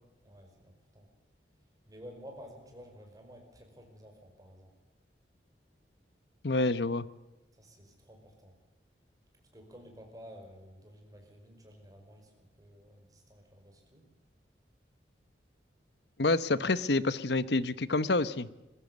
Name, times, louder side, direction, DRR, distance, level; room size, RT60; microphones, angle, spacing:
voice 1, 0.2-1.1 1.9-4.7 7.5-8.5 9.5-14.1, equal, 20° right, 3 dB, 5.1 m, -52 dB
voice 2, 6.4-7.1 16.2-18.5, left 2 dB, 70° left, 16 dB, 1.0 m, -28 dB
21.5 x 16.0 x 8.2 m, 1.0 s
head